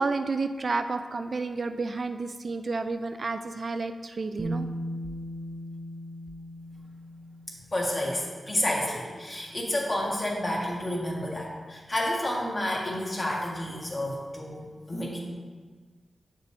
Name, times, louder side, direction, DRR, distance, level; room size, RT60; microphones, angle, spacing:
voice 1, 0.0-4.7, right 3 dB, 50° right, 8 dB, 0.3 m, -30 dB
Bass guitar, 4.4-8.3 9.5-9.6, equal, 10° right, 0.8 m, -37 dB
voice 2, 7.7-15.2, left 1 dB, 35° left, -2 dB, 1.5 m, -30 dB
7.2 x 6.6 x 3.2 m, 1.5 s
wide cardioid pair, 95°, 0 cm